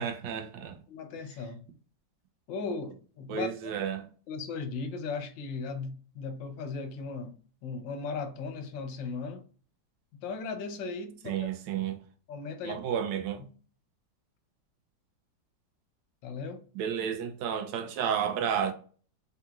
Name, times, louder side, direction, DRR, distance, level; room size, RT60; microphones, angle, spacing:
voice 1, 0.0-0.8 3.3-4.1 11.3-12.0 12.6-13.4 16.7-18.7, right 8 dB, 80° right, 1.2 m, -31 dB
voice 2, 0.9-1.6 2.5-3.7 4.3-7.3 7.6-9.4 10.2-11.5 12.3-12.8 16.2-16.6, left 4 dB, 85° left, 1.3 m, -37 dB
3.6 x 2.8 x 2.3 m
omnidirectional pair, 2.0 m